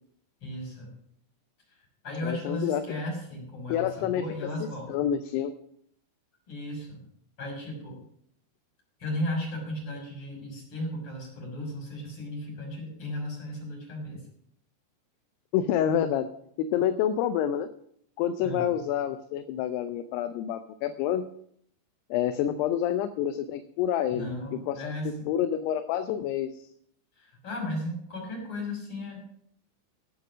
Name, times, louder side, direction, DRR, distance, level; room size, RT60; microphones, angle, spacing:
voice 1, 0.4-0.9 1.7-1.8 2.0-5.1 6.5-7.0 7.4-8.0 9.0-14.2 18.4-18.7 24.1-25.3 27.1-29.2, left 1 dB, 30° left, -2 dB, 6.6 m, -35 dB
voice 2, 2.2-3.0 3.7-4.3 4.9-5.5 15.5-16.3 16.6-17.7 18.2-21.3 22.1-24.3 24.7-24.9 25.3-26.7, left 10 dB, 80° left, 10 dB, 2.5 m, -28 dB
16.5 x 8.2 x 6.3 m, 0.69 s
omnidirectional pair, 5.1 m